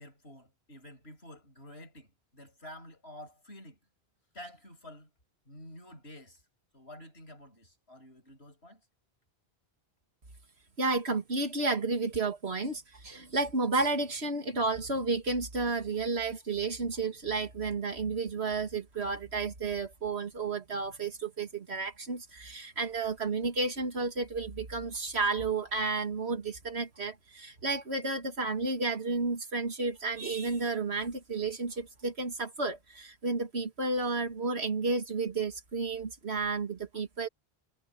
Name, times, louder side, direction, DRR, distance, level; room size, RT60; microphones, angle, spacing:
voice 1, 0.0-3.8 4.3-5.1 5.5-6.4 6.7-8.8, left 1 dB, 75° left, 8.3 m, -49 dB
voice 2, 10.8-37.3, right 3 dB, 80° right, 2.5 m, -32 dB
omnidirectional pair, 1.1 m